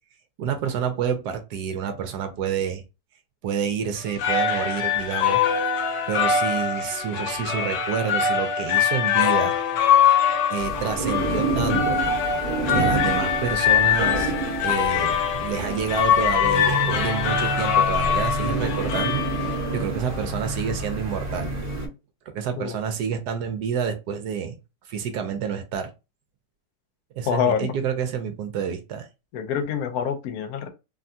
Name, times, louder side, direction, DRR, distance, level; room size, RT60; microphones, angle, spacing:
voice 1, 0.4-2.8 3.4-5.4 6.1-9.6 10.5-12.0 12.7-14.4 14.6-19.2 19.7-21.5 22.3-24.6 24.9-25.9 27.2-29.1, right 7 dB, 75° right, 1.1 m, -28 dB
sound 1, 4.0-19.9, left 7 dB, 85° left, 1.3 m, -23 dB
sound 2, 10.6-21.9, right 2 dB, 30° right, 0.7 m, -29 dB
voice 2, 27.3-27.7 29.3-30.7, left 8 dB, 70° left, 1.0 m, -26 dB
3.4 x 2.2 x 2.6 m
omnidirectional pair, 1.9 m